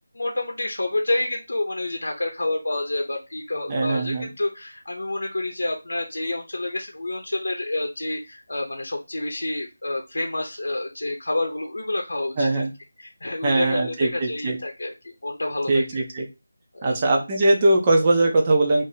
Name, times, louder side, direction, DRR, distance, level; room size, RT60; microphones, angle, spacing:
voice 1, 0.1-12.6 13.0-15.8 16.7-16.9, left 2 dB, 85° left, 2 dB, 0.7 m, -28 dB
voice 2, 3.7-4.3 12.4-12.7 13.4-14.6 15.7-16.3 16.8-18.8, right 2 dB, 20° right, 0 dB, 0.5 m, -21 dB
2.7 x 2.6 x 3.9 m, 0.26 s
figure-of-eight pair, 175°, 0 cm